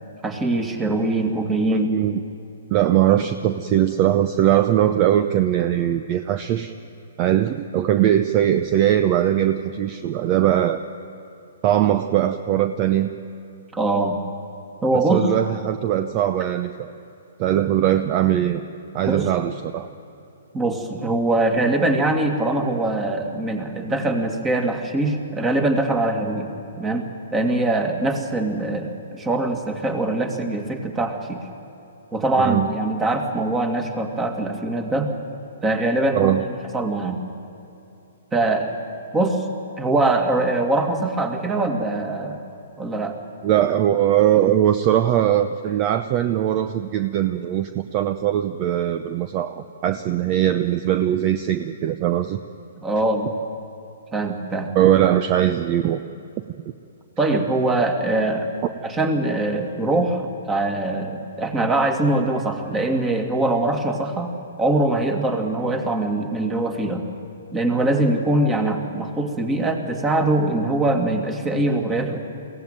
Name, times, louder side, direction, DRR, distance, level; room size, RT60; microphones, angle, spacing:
voice 1, 0.2-1.9 13.7-14.2 14.8-15.3 19.1-19.3 20.5-26.5 26.8-31.4 32.1-35.1 35.6-36.4 36.7-37.2 38.3-38.7 39.1-39.4 39.8-42.4 42.8-43.2 52.8-53.3 54.1-54.7 57.2-58.5 58.8-64.3 64.6-67.0 67.5-72.2, right 2 dB, 15° right, 4 dB, 2.3 m, -22 dB
voice 2, 1.7-2.2 2.7-6.7 7.2-10.8 11.6-13.1 14.9-16.9 17.4-18.7 18.9-19.9 32.4-32.7 36.1-36.4 43.4-52.4 54.7-56.0, right 11 dB, 35° right, 10 dB, 0.7 m, -20 dB
22.5 x 17.0 x 9.2 m, 2.8 s
hypercardioid pair, 130°, 0 cm